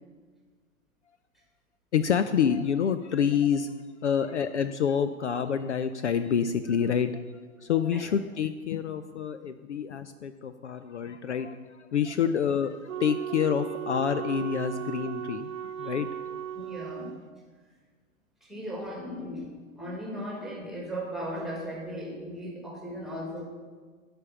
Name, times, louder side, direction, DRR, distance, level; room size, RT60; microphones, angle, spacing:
voice 1, 1.9-3.7 4.0-7.2 7.6-15.5 15.8-16.1, left 7 dB, 55° left, 11 dB, 0.5 m, -27 dB
Wind instrument woodwind instrument, 12.9-17.2, right 11 dB, 70° right, 0.5 m, -36 dB
voice 2, 16.5-17.2 18.4-19.5 19.8-23.4, equal, ahead, -1 dB, 1.6 m, -37 dB
12.0 x 5.2 x 7.4 m, 1.5 s
figure-of-eight pair, 120°, 42 cm